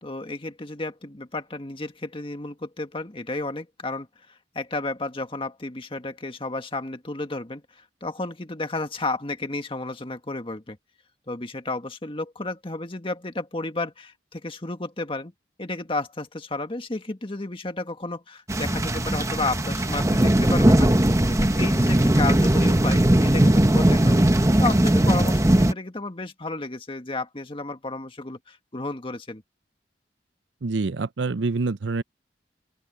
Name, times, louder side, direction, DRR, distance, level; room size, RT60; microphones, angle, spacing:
voice 1, 0.0-10.8 11.3-15.3 15.6-20.9 21.3-29.4, left 2 dB, 30° left, 1.7 m, -32 dB
sound 1, 18.5-25.7, right 1 dB, 15° right, 1.0 m, -19 dB
voice 2, 30.6-32.0, right 3 dB, 90° right, 0.7 m, -26 dB
open air
head